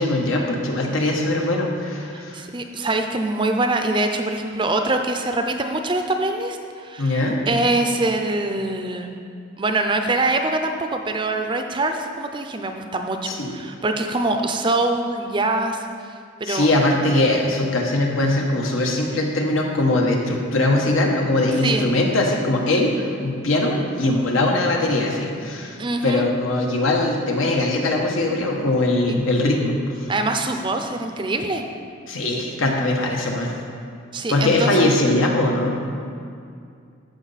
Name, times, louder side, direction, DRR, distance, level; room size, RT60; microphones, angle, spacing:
voice 1, 0.0-2.4 7.0-7.5 13.2-13.6 16.4-25.8 26.0-29.7 32.1-33.5 34.3-35.8, left 2 dB, 85° left, 0 dB, 1.2 m, -21 dB
voice 2, 2.1-9.1 9.6-15.9 16.4-16.7 21.6-21.9 25.8-26.3 29.1-29.2 30.1-31.6 34.1-34.7, right 2 dB, 25° right, 5 dB, 0.5 m, -24 dB
13.5 x 5.2 x 4.1 m, 2.3 s
head